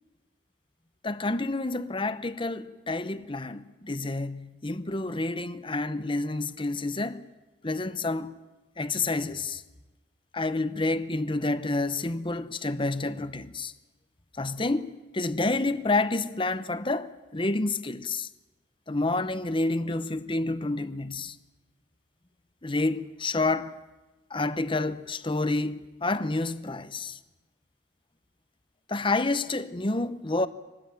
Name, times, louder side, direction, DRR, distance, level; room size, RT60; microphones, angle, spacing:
voice 1, 1.0-7.3 7.6-8.3 8.8-9.6 10.3-13.7 14.4-18.3 18.9-21.4 22.6-23.8 24.3-27.2 28.9-30.5, left 2 dB, 30° left, 1.0 m, -29 dB
24.5 x 19.0 x 8.9 m
head